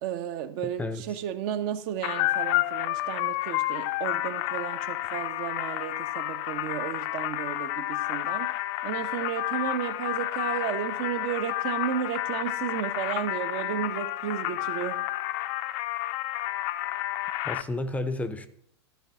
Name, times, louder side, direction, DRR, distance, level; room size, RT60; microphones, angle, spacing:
voice 1, 0.0-8.5 8.8-15.0, right 10 dB, 45° right, 1.0 m, -33 dB
sound 1, 2.0-17.6, left 16 dB, 45° left, 0.6 m, -30 dB
voice 2, 17.4-18.5, left 2 dB, 10° left, 0.7 m, -31 dB
12.5 x 4.7 x 7.5 m
figure-of-eight pair, 100°, 14 cm